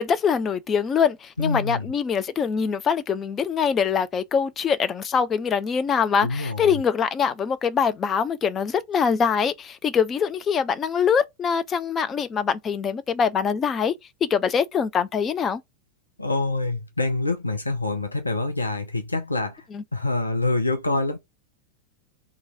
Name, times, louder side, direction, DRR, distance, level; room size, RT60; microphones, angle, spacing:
voice 1, 0.0-13.9 14.2-15.6 19.7-19.8, left 6 dB, 25° left, 0.5 m, -23 dB
voice 2, 1.4-1.9 6.2-6.8 16.2-19.6 19.9-21.2, left 2 dB, 80° left, 0.7 m, -26 dB
3.1 x 2.5 x 3.8 m
figure-of-eight pair, 90°, 0 cm